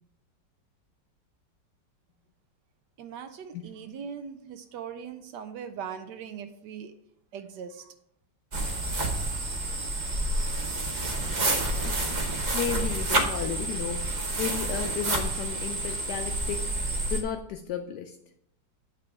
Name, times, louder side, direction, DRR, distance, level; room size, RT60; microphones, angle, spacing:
voice 1, 3.0-6.9 7.3-7.9, right 7 dB, 75° right, 9 dB, 1.1 m, -40 dB
sound 1, 8.5-17.2, right 2 dB, 35° right, 0.7 m, -29 dB
voice 2, 11.8-16.7 17.1-18.2, left 8 dB, 75° left, 6 dB, 1.0 m, -34 dB
9.1 x 3.7 x 4.7 m, 0.73 s
omnidirectional pair, 2.0 m